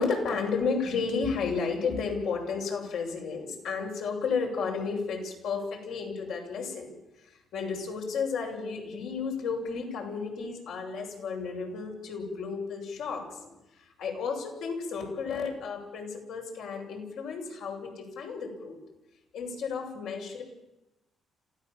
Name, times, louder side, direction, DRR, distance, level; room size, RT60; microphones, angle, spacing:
voice 1, 0.0-6.9 7.2-18.8 19.3-20.4, left 5 dB, 80° left, 0 dB, 7.0 m, -32 dB
27.0 x 16.5 x 7.5 m, 0.95 s
cardioid pair, 90°, 0 cm